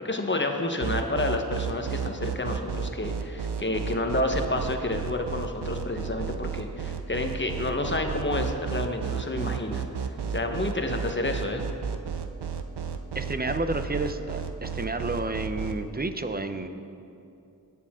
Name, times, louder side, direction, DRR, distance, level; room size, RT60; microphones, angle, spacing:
voice 1, 0.0-9.9 10.3-11.6, left 2 dB, 30° left, 4 dB, 1.2 m, -29 dB
sound 1, 0.8-15.7, right 7 dB, 80° right, 0.7 m, -32 dB
voice 2, 13.1-16.7, right 2 dB, 25° right, 8 dB, 0.7 m, -30 dB
17.5 x 6.8 x 3.7 m, 2.6 s
cardioid pair, 45°, 39 cm